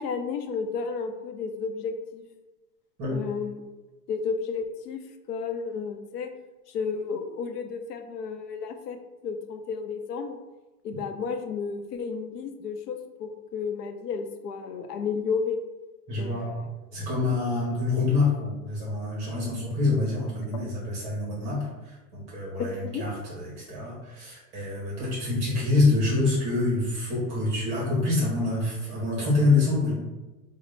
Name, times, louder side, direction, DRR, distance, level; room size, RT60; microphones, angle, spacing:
voice 1, 0.0-2.2 3.1-3.6 4.1-5.0 5.3-6.3 6.7-9.0 9.2-10.4 10.8-15.6 16.1-16.6 20.5-20.6 22.8-23.0, left 5 dB, 85° left, 6 dB, 0.7 m, -32 dB
voice 2, 16.1-16.6 16.9-29.9, left 3 dB, 15° right, -5 dB, 0.6 m, -26 dB
5.0 x 2.1 x 3.2 m, 1.1 s
supercardioid pair, 170°, 46 cm